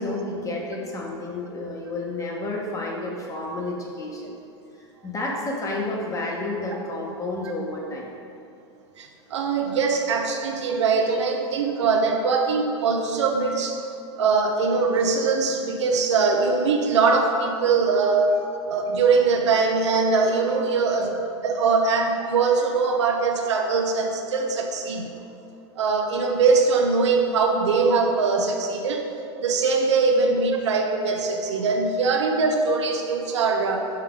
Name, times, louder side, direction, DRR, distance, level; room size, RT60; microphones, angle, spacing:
voice 1, 0.0-4.3 5.0-8.1 18.3-18.4 20.8-21.2 23.1-23.2, left 2 dB, 20° left, -1 dB, 1.1 m, -31 dB
voice 2, 9.0-13.8 14.2-18.3 18.7-25.1 25.8-29.1 29.4-33.9, right 4 dB, 85° right, 3 dB, 0.6 m, -22 dB
5.7 x 4.6 x 3.7 m, 2.6 s
hypercardioid pair, 105°, 15 cm